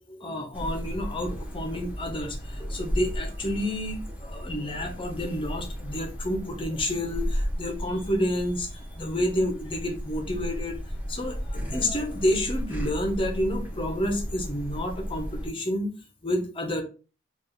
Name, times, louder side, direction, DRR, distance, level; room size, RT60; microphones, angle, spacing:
voice 1, 0.1-10.8 11.1-15.9 16.2-16.8, left 1 dB, 30° left, 3 dB, 0.8 m, -29 dB
sound 1, 0.5-15.5, equal, 10° right, 1.4 m, -34 dB
3.3 x 2.4 x 3.8 m, 0.34 s
head